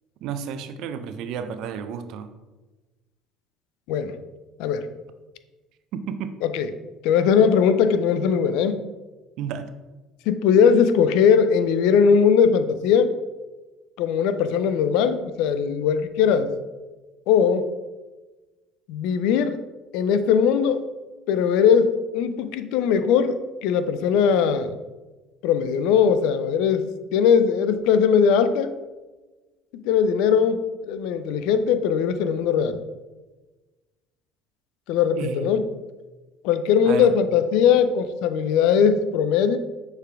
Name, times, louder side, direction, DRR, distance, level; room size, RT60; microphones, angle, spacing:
voice 1, 0.2-2.3 5.9-6.3 9.4-9.7 35.2-35.6 36.8-37.1, right 7 dB, 65° right, 10 dB, 0.3 m, -32 dB
voice 2, 6.4-6.7 7.0-8.8 10.3-13.1 14.0-16.5 17.3-17.7 18.9-19.6 19.9-20.9 21.3-24.8 25.4-26.8 27.1-28.7 29.8-32.8 34.9-35.7 36.4-39.6, left 7 dB, 70° left, 11 dB, 0.3 m, -20 dB
6.5 x 3.3 x 2.4 m, 1.2 s
hypercardioid pair, 65°, 0 cm